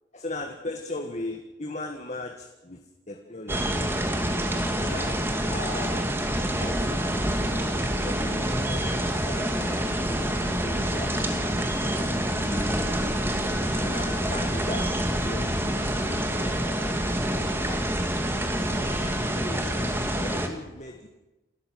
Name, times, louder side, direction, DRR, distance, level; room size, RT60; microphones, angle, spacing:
voice 1, 0.1-3.8 4.8-6.1 6.5-7.5 8.0-11.4 11.9-12.2 12.4-12.9 13.6-15.5 15.9-18.0 18.5-19.0 19.4-21.1, left 2 dB, 40° left, 4 dB, 1.7 m, -39 dB
sound 1, 3.5-20.5, right 1 dB, 10° right, 2.2 m, -27 dB
Bird, 5.1-14.8, equal, 20° left, 5.4 m, -45 dB
28.5 x 13.5 x 7.7 m, 1.0 s
head